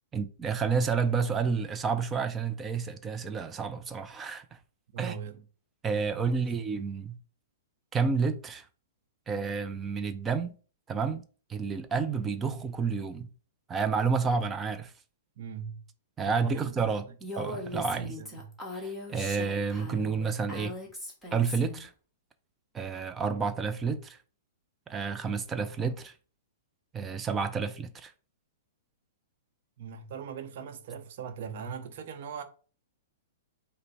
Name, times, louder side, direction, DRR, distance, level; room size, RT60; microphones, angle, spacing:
voice 1, 0.1-4.4 5.0-5.2 5.8-7.2 7.9-8.7 9.3-10.5 10.9-13.3 13.7-14.9 16.2-17.1 17.3-18.2 18.7-20.7 21.3-21.9 22.7-24.2 24.9-26.1 26.9-28.1, right 5 dB, 15° right, 0.5 m, -30 dB
voice 2, 4.9-5.4 6.1-6.6 15.4-15.9 16.2-16.6 17.1-17.2 17.9-18.5 29.8-32.4, right 7 dB, 55° right, 0.7 m, -40 dB
Female speech woman speaking, 17.2-21.9, left 2 dB, ahead, 1.2 m, -39 dB
5.2 x 2.1 x 4.1 m
hypercardioid pair, 130°, 0 cm